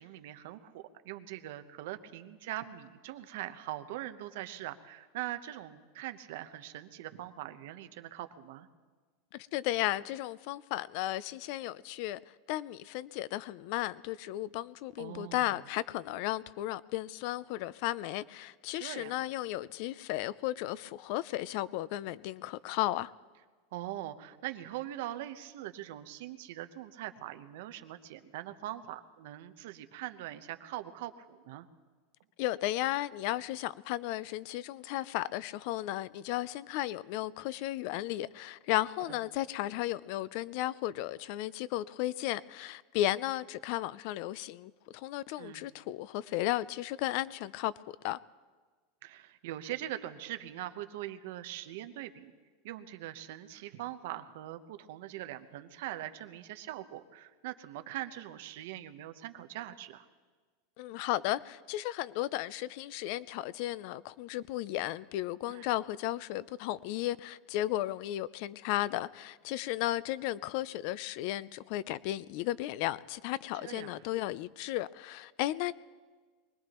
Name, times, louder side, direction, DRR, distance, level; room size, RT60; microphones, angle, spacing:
voice 1, 0.0-8.7 15.0-15.6 18.7-19.2 23.7-31.7 39.1-39.2 45.4-45.7 49.0-52.3 52.6-60.1 65.5-65.7 73.5-73.9, right 14 dB, 60° right, 0.9 m, -42 dB
voice 2, 9.3-12.2 12.5-23.1 32.4-47.7 48.0-48.2 60.8-75.7, left 15 dB, 50° left, 0.4 m, -34 dB
23.5 x 19.0 x 3.0 m
supercardioid pair, 170°, 0 cm